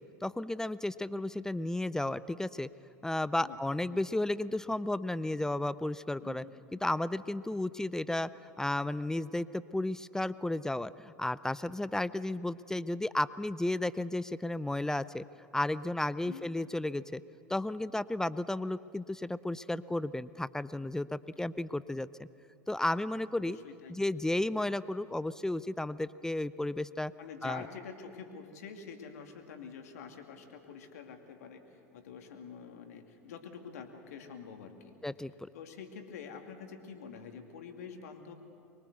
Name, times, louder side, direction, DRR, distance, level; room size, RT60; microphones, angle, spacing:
voice 1, 0.2-2.7 3.0-6.4 6.8-8.3 8.6-15.2 15.5-17.2 17.5-22.3 22.7-23.6 23.9-27.1 27.4-27.7 35.0-35.5, left 1 dB, 5° left, 17 dB, 0.5 m, -33 dB
voice 2, 6.2-6.5 16.2-16.5 23.4-23.9 27.2-35.0 35.5-38.3, left 6 dB, 70° left, 5 dB, 2.5 m, -47 dB
25.0 x 22.5 x 8.1 m, 2.5 s
figure-of-eight pair, 80°, 9 cm